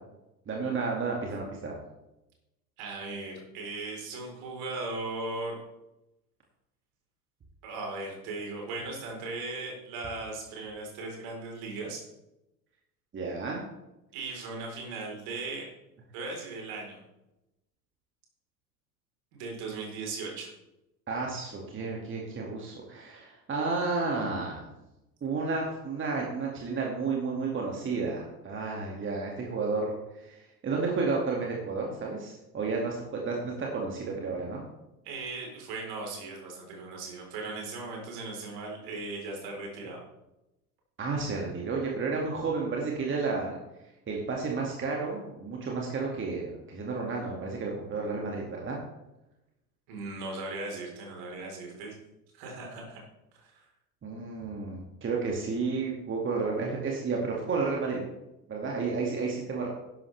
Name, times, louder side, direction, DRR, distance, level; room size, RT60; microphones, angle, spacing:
voice 1, 0.5-1.8 13.1-13.6 21.1-24.7 25.2-34.6 41.0-43.6 44.1-48.8 54.0-58.0 58.5-59.7, right 4 dB, 25° right, -1 dB, 2.4 m, -32 dB
voice 2, 2.8-5.6 7.6-12.0 14.1-15.7 16.1-17.0 19.3-20.5 35.0-40.0 49.9-51.9 52.3-53.0 53.3-53.6, right 3 dB, 50° right, 0 dB, 4.4 m, -38 dB
12.0 x 11.0 x 3.5 m, 0.92 s
figure-of-eight pair, 75°, 48 cm